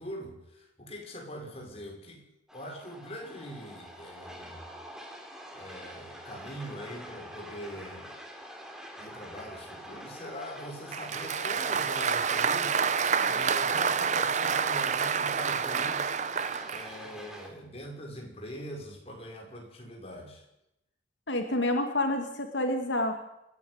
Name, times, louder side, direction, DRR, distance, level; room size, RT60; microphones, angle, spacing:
voice 1, 0.0-2.2 2.5-4.7 5.5-8.2 9.0-16.1 16.7-20.4, equal, 35° left, 1 dB, 5.8 m, -42 dB
sound 1, 2.5-17.5, equal, 5° right, 3.6 m, -46 dB
Applause, 10.9-16.9, right 6 dB, 40° right, 0.8 m, -28 dB
voice 2, 21.3-23.1, left 1 dB, 85° left, 5 dB, 2.3 m, -28 dB
26.0 x 11.0 x 9.6 m, 0.85 s
head